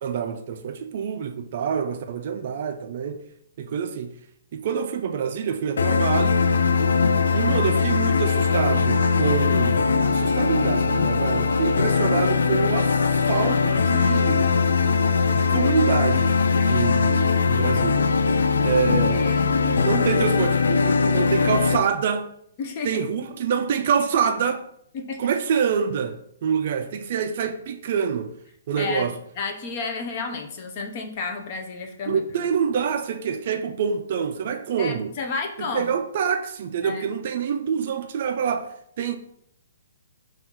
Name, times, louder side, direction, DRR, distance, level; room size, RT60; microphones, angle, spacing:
voice 1, 0.0-3.3 3.6-4.1 4.5-6.4 7.3-13.0 13.3-14.5 15.3-18.2 18.6-19.3 19.6-22.3 22.8-24.6 25.2-28.4 28.7-29.2 32.1-35.1 35.6-39.2, right 7 dB, 40° right, 0.3 m, -26 dB
sound 1, 5.8-21.8, left 5 dB, 85° left, 0.3 m, -21 dB
voice 2, 19.1-19.6 22.6-22.9 24.9-25.2 28.8-32.2 34.8-35.9 36.8-37.0, left 4 dB, 30° left, 0.5 m, -31 dB
4.3 x 2.4 x 3.8 m
hypercardioid pair, 170°, 0 cm